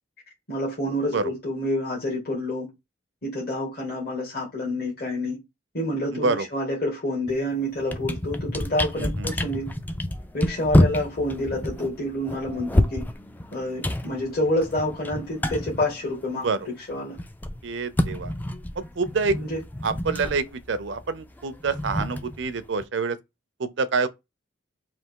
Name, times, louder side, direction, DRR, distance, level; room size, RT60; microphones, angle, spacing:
voice 1, 0.5-2.7 3.2-5.4 5.7-9.7 10.3-13.1 13.5-17.2 19.3-19.6, left 1 dB, 50° left, 1.3 m, -28 dB
voice 2, 6.1-6.5 9.0-9.3 16.3-16.6 17.6-18.3 18.8-19.4 19.8-23.2 23.6-24.1, right 4 dB, 70° right, 0.5 m, -27 dB
sound 1, 7.3-7.5 7.8-16.6 16.9-22.9, left 1 dB, 10° left, 0.3 m, -28 dB
3.4 x 2.7 x 4.5 m
head